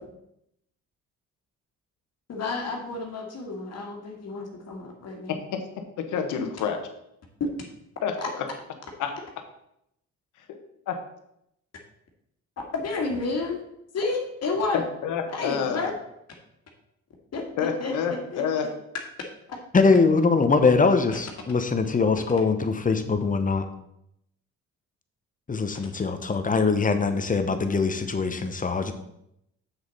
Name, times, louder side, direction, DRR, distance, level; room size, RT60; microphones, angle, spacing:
voice 1, 2.3-5.4 12.7-13.6 13.9-14.8 15.3-15.9 17.3-18.7 19.5-19.6, left 3 dB, 55° left, 0 dB, 1.9 m, -31 dB
voice 2, 5.3-5.6 6.0-6.8 8.0-8.5 9.0-9.1 10.5-10.6 10.9-11.0 14.7-15.9 17.6-18.7, left 7 dB, 85° left, 6 dB, 1.2 m, -28 dB
voice 3, 19.7-23.6 25.5-28.9, left 4 dB, 25° left, 8 dB, 0.9 m, -22 dB
7.3 x 6.7 x 4.1 m, 0.79 s
cardioid pair, 90°, 30 cm